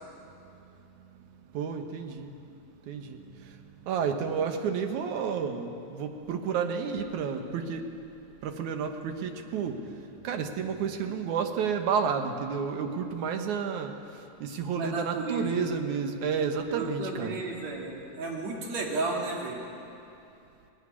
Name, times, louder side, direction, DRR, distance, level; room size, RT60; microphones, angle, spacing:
voice 1, 1.5-2.3 2.9-3.5 3.9-7.9 8.4-13.9 14.4-17.4, right 6 dB, 75° right, 6 dB, 2.6 m, -31 dB
voice 2, 14.8-15.8 16.7-19.6, right 3 dB, 60° right, -1 dB, 3.7 m, -33 dB
18.0 x 16.0 x 9.8 m, 2.7 s
omnidirectional pair, 3.5 m